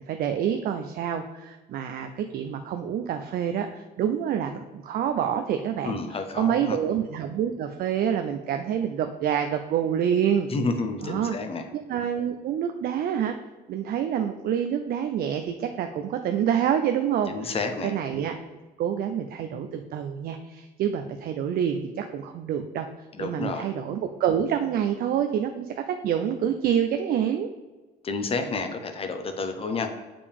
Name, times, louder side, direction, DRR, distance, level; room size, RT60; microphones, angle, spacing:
voice 1, 0.1-10.5 11.0-11.4 11.7-13.3 13.7-17.6 17.8-18.4 18.8-22.9 23.2-25.7 26.0-27.5, right 9 dB, 60° right, 6 dB, 0.5 m, -27 dB
voice 2, 5.8-6.8 10.5-11.7 17.3-17.9 23.1-23.7 28.0-29.9, left 3 dB, 35° left, 6 dB, 0.8 m, -30 dB
6.7 x 5.1 x 3.5 m, 1.2 s
cardioid pair, 110°, 17 cm